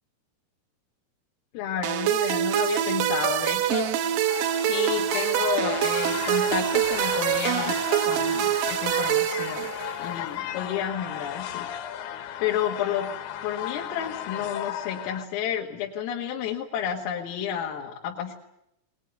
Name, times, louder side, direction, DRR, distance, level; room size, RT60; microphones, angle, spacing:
voice 1, 1.5-3.9 4.6-9.7 10.0-11.7 12.4-13.1 13.4-18.4, left 9 dB, 85° left, 0 dB, 4.4 m, -31 dB
sound 1, 1.8-10.1, right 11 dB, 80° right, 3.8 m, -25 dB
sound 2, 3.6-15.3, left 11 dB, 70° left, 3.5 m, -35 dB
23.0 x 20.0 x 9.2 m, 0.81 s
omnidirectional pair, 5.8 m